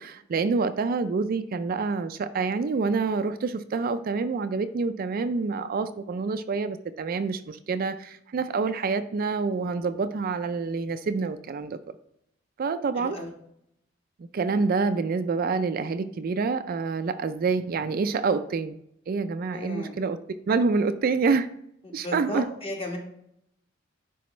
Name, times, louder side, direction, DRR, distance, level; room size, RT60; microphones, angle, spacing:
voice 1, 0.0-11.8 12.6-13.2 14.3-18.7 19.1-20.2 20.5-21.5 21.9-22.4, right 4 dB, 50° right, 10 dB, 0.4 m, -27 dB
voice 2, 12.9-13.3 19.5-19.9 21.8-23.0, left 1 dB, 30° left, 0 dB, 1.3 m, -34 dB
10.0 x 4.1 x 3.1 m, 0.74 s
head